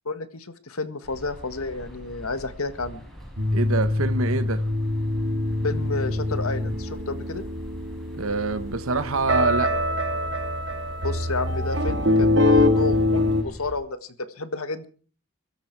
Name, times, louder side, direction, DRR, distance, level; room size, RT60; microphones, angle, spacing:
voice 1, 0.1-3.1 5.6-7.4 11.0-14.9, left 3 dB, 85° left, 1.7 m, -31 dB
sound 1, 1.0-13.7, equal, ahead, 5.3 m, -44 dB
sound 2, 3.4-13.4, left 2 dB, 55° right, 2.3 m, -24 dB
voice 2, 3.5-4.6 8.1-9.7, right 3 dB, 80° right, 1.2 m, -25 dB
23.0 x 13.0 x 4.7 m
head